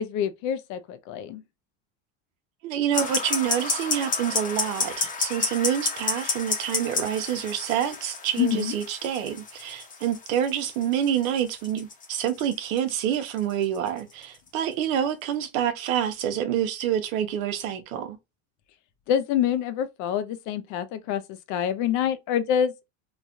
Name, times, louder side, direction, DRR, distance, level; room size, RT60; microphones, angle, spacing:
voice 1, 0.0-1.4 8.4-8.7 19.1-21.2 21.5-22.9, left 9 dB, 50° left, 0.4 m, -26 dB
voice 2, 2.6-18.2, right 9 dB, 90° right, 0.8 m, -27 dB
sound 1, 2.9-15.0, left 4 dB, 20° left, 0.7 m, -31 dB
3.1 x 2.2 x 2.4 m
supercardioid pair, 120°, 39 cm